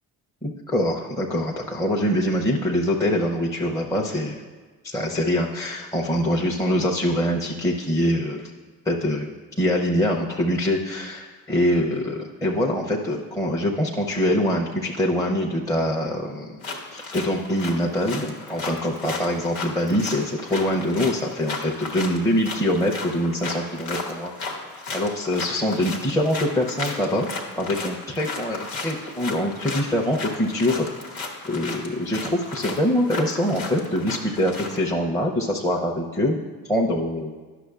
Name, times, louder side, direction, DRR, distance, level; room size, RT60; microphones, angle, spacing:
voice 1, 0.4-4.4 4.8-8.5 8.9-9.3 9.6-16.6 16.9-24.3 24.9-27.3 27.6-30.9 31.4-36.4 36.6-37.3, left 1 dB, 10° left, -1 dB, 0.5 m, -24 dB
sound 1, 16.6-34.9, left 3 dB, 80° left, 1.1 m, -35 dB
10.5 x 6.1 x 2.4 m, 1.3 s
hypercardioid pair, 55°, 46 cm